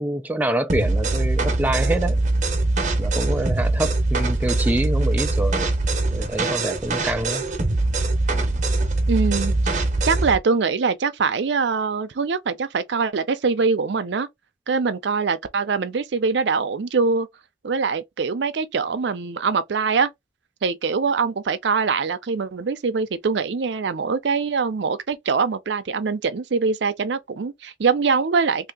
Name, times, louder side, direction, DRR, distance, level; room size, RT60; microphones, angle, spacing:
voice 1, 0.0-2.2 3.0-5.7 6.1-7.4, right 1 dB, 10° right, 0.3 m, -26 dB
sound 1, 0.7-10.4, right 2 dB, 45° right, 0.8 m, -22 dB
voice 2, 9.1-14.3 14.7-17.3 17.6-20.1 20.6-28.7, right 5 dB, 75° right, 0.5 m, -23 dB
3.2 x 2.8 x 3.5 m
head